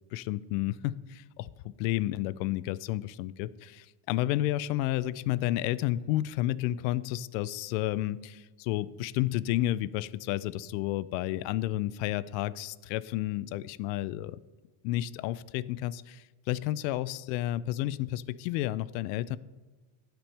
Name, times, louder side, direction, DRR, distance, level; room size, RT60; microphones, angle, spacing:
voice 1, 0.1-14.3 14.8-19.4, left 15 dB, 85° left, 19 dB, 0.6 m, -31 dB
16.0 x 6.1 x 3.3 m, 1.3 s
cardioid pair, 175°, 49 cm